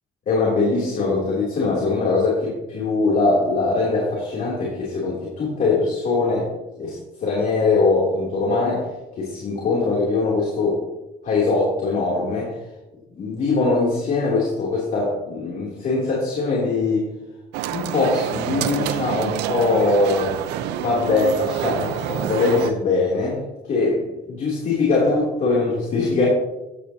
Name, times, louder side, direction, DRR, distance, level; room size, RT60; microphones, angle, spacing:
voice 1, 0.3-6.5 6.8-8.9 9.2-10.8 11.2-12.6 13.1-17.1 17.7-20.4 20.8-26.3, left 3 dB, 50° left, -5 dB, 3.2 m, -22 dB
sound 1, 17.5-22.7, right 10 dB, 90° right, 0.7 m, -27 dB
15.0 x 9.1 x 2.9 m, 1.0 s
cardioid pair, 110°, 17 cm